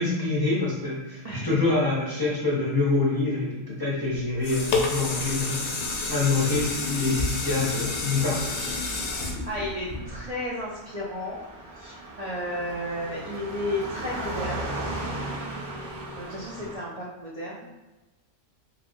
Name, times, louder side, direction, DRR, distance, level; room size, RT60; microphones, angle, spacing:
voice 1, 0.0-5.8 6.1-8.7, left 3 dB, 30° left, -7 dB, 0.4 m, -26 dB
voice 2, 1.2-1.7 9.3-11.4 11.8-14.6 15.8-17.8, left 1 dB, 65° right, -6 dB, 0.3 m, -33 dB
sound 1, 4.1-10.5 11.0-11.1, left 3 dB, 65° left, 0.8 m, -29 dB
Car passing by, 6.8-16.8, right 2 dB, 50° right, 0.9 m, -38 dB
3.0 x 2.8 x 2.6 m, 1.1 s
omnidirectional pair, 1.4 m